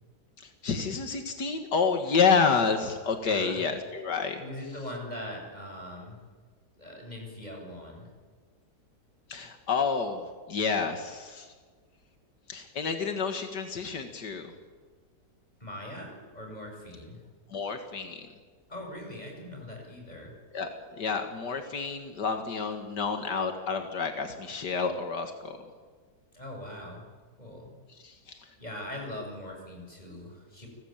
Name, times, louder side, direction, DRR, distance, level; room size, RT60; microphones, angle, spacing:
voice 1, 0.4-4.4 9.3-11.5 12.5-14.5 17.5-18.3 20.5-25.6 28.0-28.4, left 5 dB, 80° left, 6 dB, 2.3 m, -29 dB
voice 2, 3.2-3.6 4.4-6.2 6.8-8.1 15.6-17.2 18.7-20.3 26.3-27.0 27.4-27.7 28.6-30.7, left 1 dB, 25° left, 1 dB, 7.1 m, -41 dB
29.5 x 20.0 x 8.9 m, 1.5 s
omnidirectional pair, 1.8 m